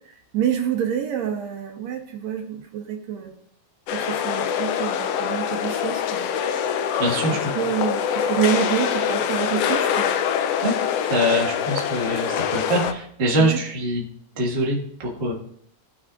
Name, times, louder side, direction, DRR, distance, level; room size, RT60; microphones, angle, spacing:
voice 1, 0.3-3.3 3.9-6.2 7.3-10.1 13.4-13.6, right 9 dB, 75° right, 3 dB, 2.0 m, -27 dB
sound 1, 3.9-12.9, left 8 dB, 80° left, 1.4 m, -24 dB
voice 2, 7.0-7.5 10.6-10.7 11.1-14.0 14.4-15.3, right 1 dB, 30° right, -2 dB, 1.2 m, -23 dB
17.0 x 6.1 x 2.4 m, 0.66 s
omnidirectional pair, 3.3 m